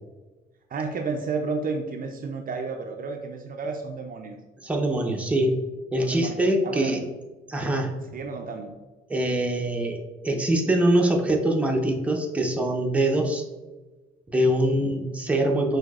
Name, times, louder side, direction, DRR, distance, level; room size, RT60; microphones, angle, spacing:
voice 1, 0.7-4.4 6.0-7.0 8.1-8.7, right 4 dB, 45° right, 4 dB, 0.4 m, -32 dB
voice 2, 4.6-5.6 5.9-7.1 7.5-7.9 9.1-10.0 10.2-13.4 14.3-15.8, right 1 dB, 5° right, 1 dB, 0.6 m, -23 dB
5.8 x 2.7 x 2.4 m, 1.2 s
cardioid pair, 90°, 20 cm